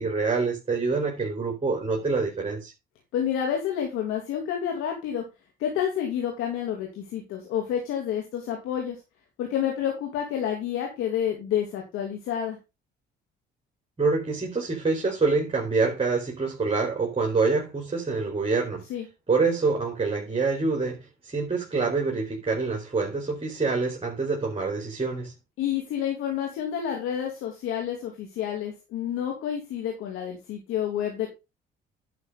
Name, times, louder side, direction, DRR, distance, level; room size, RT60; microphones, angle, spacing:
voice 1, 0.0-2.7 14.0-18.8 19.3-25.3, right 4 dB, 25° right, 4.1 m, -26 dB
voice 2, 3.1-5.2 5.6-9.0 9.4-12.6 18.9-19.1 25.6-31.3, left 9 dB, 85° left, 3.0 m, -29 dB
11.0 x 6.3 x 3.9 m
supercardioid pair, 70°, 21 cm